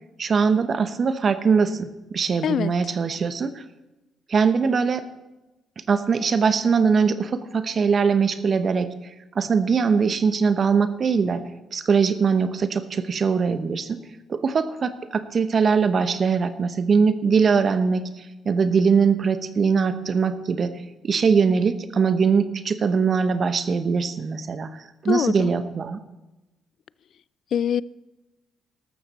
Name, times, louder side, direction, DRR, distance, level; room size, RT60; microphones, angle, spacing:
voice 1, 0.2-3.6 4.3-5.0 5.9-8.9 9.3-11.4 11.7-14.0 14.3-20.7 21.0-26.0, right 5 dB, 50° right, 12 dB, 0.8 m, -21 dB
voice 2, 2.4-2.9 25.1-25.5 27.5-27.8, left 8 dB, 65° left, 22 dB, 0.3 m, -24 dB
13.5 x 12.5 x 4.1 m, 1.0 s
hypercardioid pair, 50°, 0 cm